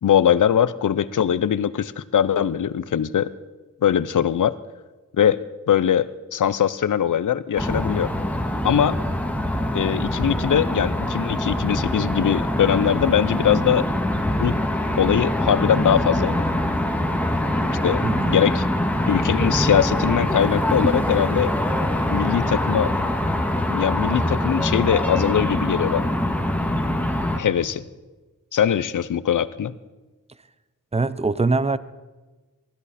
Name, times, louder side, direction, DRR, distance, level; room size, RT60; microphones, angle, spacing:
voice 1, 0.0-3.3 3.8-4.5 5.1-8.1 8.6-9.0 9.7-13.9 14.4-14.6 15.0-16.4 17.8-18.0 18.3-18.6 19.1-21.5 22.1-22.9 23.7-26.1 27.3-27.8 28.5-29.7, left 9 dB, 70° left, 16 dB, 0.6 m, -21 dB
sound 1, 7.6-27.4, left 1 dB, 5° left, 1.6 m, -24 dB
voice 2, 18.0-18.4 30.9-31.8, right 3 dB, 20° right, 16 dB, 0.6 m, -22 dB
19.5 x 13.5 x 4.2 m, 1.2 s
wide cardioid pair, 70°, 32 cm